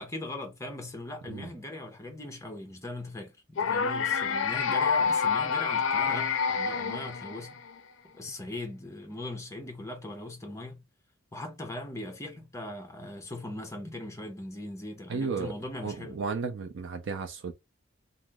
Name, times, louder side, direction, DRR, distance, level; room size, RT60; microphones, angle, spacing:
voice 1, 0.0-7.6 8.1-10.8 11.3-16.2, left 1 dB, 15° left, 0.6 m, -40 dB
sound 1, 3.6-7.7, left 6 dB, 65° left, 0.4 m, -27 dB
voice 2, 15.1-15.5 15.8-17.5, right 4 dB, 60° right, 0.4 m, -33 dB
2.9 x 2.0 x 3.4 m
head